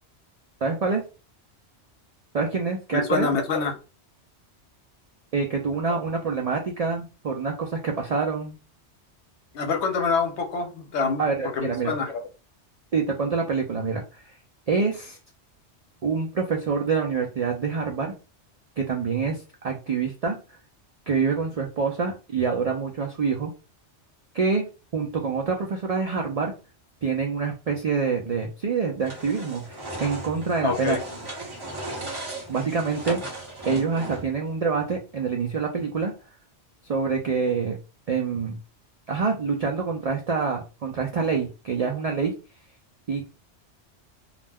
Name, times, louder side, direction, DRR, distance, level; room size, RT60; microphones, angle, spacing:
voice 1, 0.6-1.0 2.3-3.3 5.3-8.6 11.2-11.9 12.9-14.0 14.7-15.2 16.0-18.1 18.8-20.4 21.1-23.5 24.3-24.6 24.9-26.5 27.0-31.0 32.5-33.2 33.6-36.1 36.9-37.8 38.1-38.6 39.1-42.3 43.1-43.3, right 5 dB, 65° right, 0.3 m, -26 dB
voice 2, 2.9-3.8 9.5-11.2 11.5-12.2 30.6-31.0, left 5 dB, 75° left, 0.9 m, -26 dB
sound 1, 29.0-34.4, right 2 dB, 25° right, 0.8 m, -36 dB
2.4 x 2.1 x 3.4 m
omnidirectional pair, 1.2 m